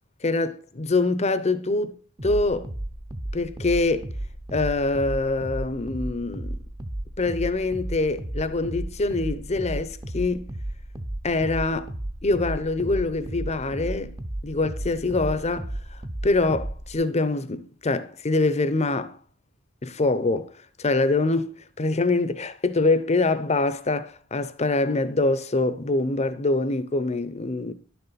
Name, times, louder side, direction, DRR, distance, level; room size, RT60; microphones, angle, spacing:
voice 1, 0.2-2.0 2.2-2.7 3.3-4.1 4.5-6.6 7.2-10.5 11.2-11.9 12.2-19.2 19.8-20.5 20.8-27.7, left 3 dB, 30° left, 0.7 m, -24 dB
sound 1, 2.2-17.0, right 1 dB, 20° right, 0.7 m, -34 dB
11.0 x 6.9 x 4.0 m
head